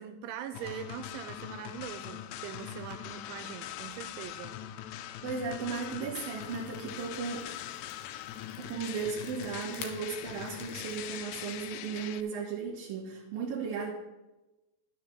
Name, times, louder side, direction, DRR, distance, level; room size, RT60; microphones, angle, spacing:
voice 1, 0.0-4.6, right 9 dB, 90° right, 7 dB, 3.1 m, -42 dB
sound 1, 0.5-12.2, left 11 dB, 85° left, 2.5 m, -42 dB
voice 2, 5.2-7.4 8.6-13.9, right 5 dB, 70° right, -4 dB, 2.3 m, -36 dB
sound 2, 6.1-11.2, left 6 dB, 65° left, 2.9 m, -50 dB
12.0 x 6.4 x 5.8 m, 1.0 s
omnidirectional pair, 5.4 m